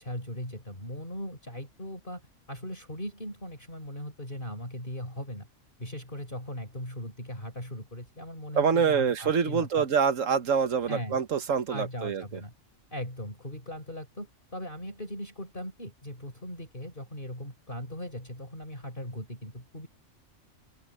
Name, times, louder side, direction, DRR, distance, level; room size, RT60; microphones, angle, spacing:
voice 1, 0.0-2.2 2.5-5.5 5.8-9.9 10.9-11.2 11.7-12.5 12.9-19.9, equal, 40° left, 5.7 m, -39 dB
voice 2, 8.5-12.4, right 6 dB, 80° right, 1.6 m, -26 dB
open air
omnidirectional pair, 1.3 m